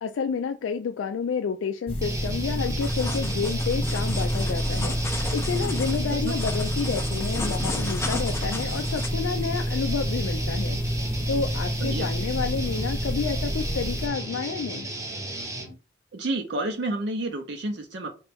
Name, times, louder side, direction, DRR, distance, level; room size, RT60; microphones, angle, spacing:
voice 1, 0.0-5.0 5.3-14.9, left 6 dB, 85° left, 6 dB, 0.3 m, -30 dB
sound 1, 1.9-14.1, equal, 30° left, 1.0 m, -28 dB
sound 2, 2.0-15.7, right 1 dB, 15° right, 0.8 m, -35 dB
sound 3, 2.8-9.1, left 2 dB, 15° left, 0.5 m, -36 dB
voice 2, 16.1-18.1, right 2 dB, 60° right, 4 dB, 0.6 m, -30 dB
4.4 x 3.0 x 3.3 m, 0.34 s
head